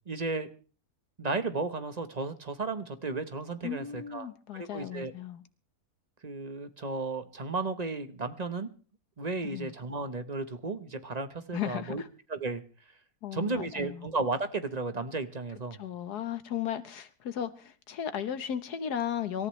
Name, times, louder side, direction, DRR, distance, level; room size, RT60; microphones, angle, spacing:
voice 1, 0.1-0.5 1.2-5.1 6.2-8.7 9.2-12.0 12.3-12.6 13.3-15.8, right 3 dB, 30° right, 1.0 m, -34 dB
voice 2, 3.6-5.4 9.4-9.7 11.5-12.1 13.2-14.1 15.8-19.5, left 9 dB, 85° left, 1.7 m, -35 dB
26.0 x 14.0 x 3.2 m
omnidirectional pair, 1.7 m